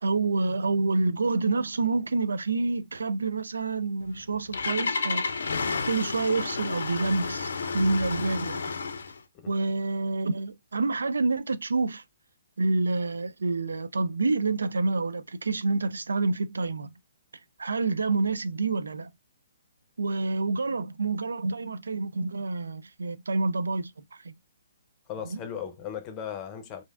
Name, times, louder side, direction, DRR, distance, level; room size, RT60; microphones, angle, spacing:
voice 1, 0.0-5.2 5.7-8.7 9.5-12.0 12.6-16.9 17.6-19.1 20.0-24.3 25.3-25.4, right 3 dB, 80° right, 0.4 m, -28 dB
Engine starting, 4.0-9.2, left 4 dB, 70° left, 0.5 m, -31 dB
voice 2, 25.1-26.8, left 8 dB, 25° left, 0.7 m, -37 dB
3.1 x 2.5 x 2.4 m
hypercardioid pair, 135°, 0 cm